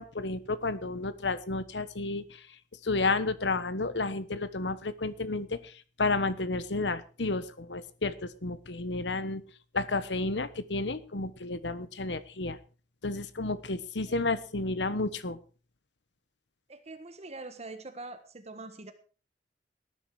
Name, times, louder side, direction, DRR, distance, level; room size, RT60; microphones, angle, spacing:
voice 1, 0.0-2.4 2.8-5.7 6.0-9.4 9.7-12.6 13.0-15.4, left 3 dB, 90° left, 14 dB, 1.3 m, -31 dB
voice 2, 16.7-18.9, right 2 dB, 40° right, 8 dB, 1.5 m, -44 dB
18.5 x 10.0 x 4.9 m, 0.37 s
head